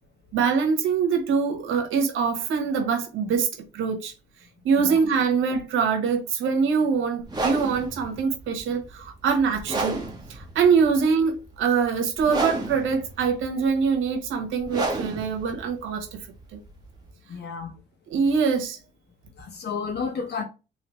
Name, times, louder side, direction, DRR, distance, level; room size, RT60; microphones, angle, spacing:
voice 1, 0.3-3.5 3.7-4.1 4.6-10.0 10.3-16.2 16.5-16.6 18.1-18.8, right 5 dB, 85° right, 1.3 m, -24 dB
sound 1, 7.2-17.1, right 2 dB, 20° right, 1.4 m, -32 dB
voice 2, 17.3-17.7 19.4-20.4, left 5 dB, 55° left, 1.5 m, -31 dB
3.3 x 3.2 x 3.2 m
cardioid pair, 90°, 20 cm